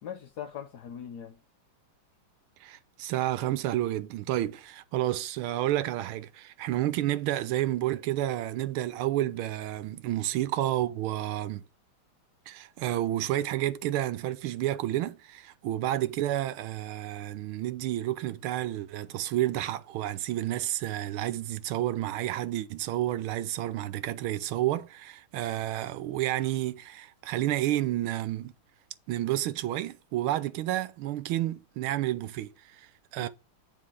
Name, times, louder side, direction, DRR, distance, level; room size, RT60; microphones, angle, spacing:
voice 1, 0.0-1.4 9.8-10.0 33.2-33.3, left 8 dB, 65° left, 1.1 m, -41 dB
voice 2, 2.6-11.6 12.5-28.5 29.1-33.3, right 14 dB, 80° right, 1.5 m, -30 dB
9.5 x 4.4 x 4.8 m
omnidirectional pair, 2.3 m